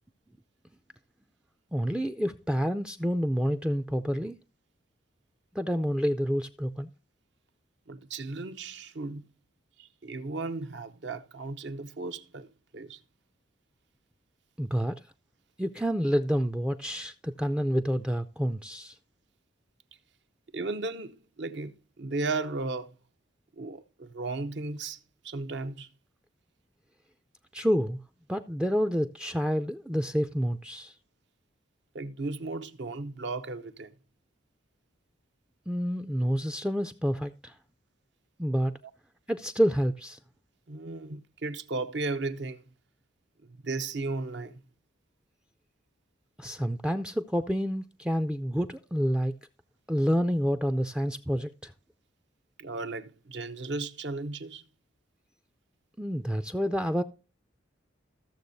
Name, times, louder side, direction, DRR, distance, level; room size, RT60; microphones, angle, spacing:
voice 1, 1.7-4.4 5.6-6.9 14.6-15.0 15.6-18.9 27.5-28.0 28.3-30.9 35.7-37.5 38.4-38.7 39.3-40.2 46.4-49.3 49.9-51.7 56.0-57.0, equal, 5° right, 0.3 m, -28 dB
voice 2, 7.9-9.2 9.8-13.0 20.5-22.9 23.6-25.0 25.2-25.9 31.9-33.9 40.7-42.6 43.4-44.6 52.6-54.6, right 3 dB, 60° right, 0.7 m, -35 dB
14.5 x 7.0 x 2.6 m
head